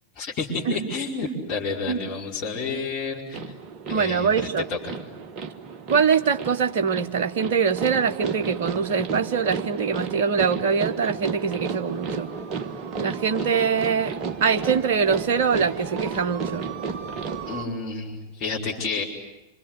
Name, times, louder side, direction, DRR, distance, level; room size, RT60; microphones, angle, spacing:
voice 1, 0.2-3.4 3.9-4.9 17.5-19.0, left 4 dB, 40° left, -5 dB, 5.2 m, -30 dB
sound 1, 3.3-17.7, right 5 dB, 35° right, 1.6 m, -33 dB
voice 2, 3.9-4.6 5.9-12.3 13.0-16.7, right 6 dB, 55° right, 8 dB, 1.3 m, -23 dB
26.5 x 26.0 x 8.2 m, 1.0 s
figure-of-eight pair, 90°, 0 cm